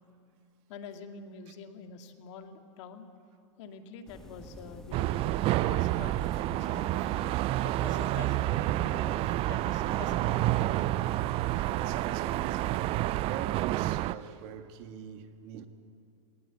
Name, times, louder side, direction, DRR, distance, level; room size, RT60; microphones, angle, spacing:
voice 1, 0.7-3.1 3.6-6.9 7.6-10.5, left 6 dB, 60° left, 2.3 m, -46 dB
sound 1, 4.1-11.7, left 1 dB, 5° left, 1.6 m, -48 dB
sound 2, 4.9-14.2, right 16 dB, 35° right, 0.4 m, -29 dB
voice 2, 11.5-15.7, right 9 dB, 50° right, 1.9 m, -42 dB
20.0 x 19.0 x 8.3 m
hypercardioid pair, 120°, 17 cm